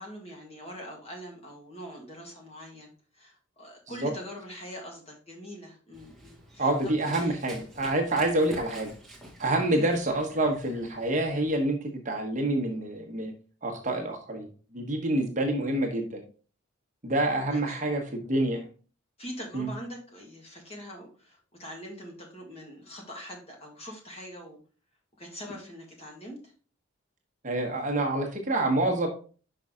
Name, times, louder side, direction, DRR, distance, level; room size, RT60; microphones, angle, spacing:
voice 1, 0.0-6.7 7.2-7.4 9.7-9.9 17.5-17.8 19.2-24.6 25.2-26.5, equal, 30° left, 0 dB, 1.9 m, -43 dB
Run, 5.9-11.5, right 1 dB, ahead, 1.3 m, -48 dB
voice 2, 6.6-8.9 9.4-13.3 13.6-14.5 14.7-16.2 17.0-18.6 19.5-19.7 27.4-29.1, right 1 dB, 35° right, 1 dB, 1.2 m, -27 dB
5.5 x 5.4 x 3.7 m, 0.39 s
head